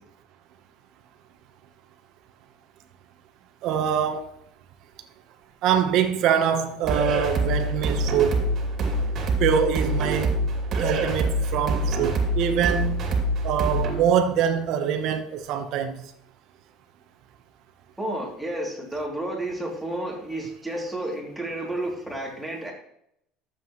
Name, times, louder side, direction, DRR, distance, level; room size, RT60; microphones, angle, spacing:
voice 1, 3.6-4.2 5.6-8.4 9.4-10.4 10.8-13.1 13.4-16.0, right 8 dB, 60° right, 1.0 m, -24 dB
sound 1, 6.8-13.9, right 1 dB, 45° right, 2.5 m, -25 dB
voice 2, 18.0-22.7, right 1 dB, ahead, 2.9 m, -31 dB
12.5 x 7.6 x 3.1 m
supercardioid pair, 120°, 0 cm